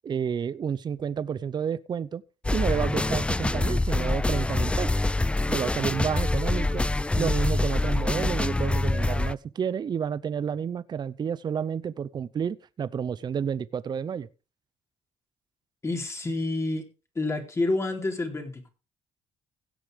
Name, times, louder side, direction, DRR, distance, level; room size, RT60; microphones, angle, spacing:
voice 1, 0.0-2.2 2.5-4.9 5.5-6.8 7.2-14.3, right 7 dB, 45° right, 0.7 m, -30 dB
sound 1, 2.4-9.3, left 2 dB, 10° left, 0.5 m, -25 dB
voice 2, 15.8-16.9 17.1-18.7, left 2 dB, 25° left, 4.0 m, -28 dB
16.5 x 6.9 x 5.0 m
cardioid pair, 80°, 11 cm